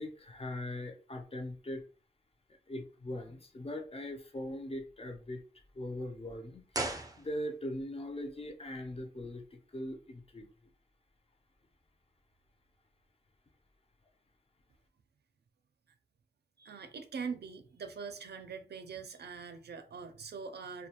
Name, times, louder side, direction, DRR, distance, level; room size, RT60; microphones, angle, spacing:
voice 1, 0.0-1.8 2.7-5.4 5.7-10.7, left 1 dB, 35° left, 0.5 m, -41 dB
sound 1, 6.7-8.1, right 2 dB, 20° right, 0.4 m, -38 dB
voice 2, 16.6-20.9, right 5 dB, 90° right, 0.4 m, -43 dB
2.2 x 2.2 x 2.8 m
wide cardioid pair, 75°, 17 cm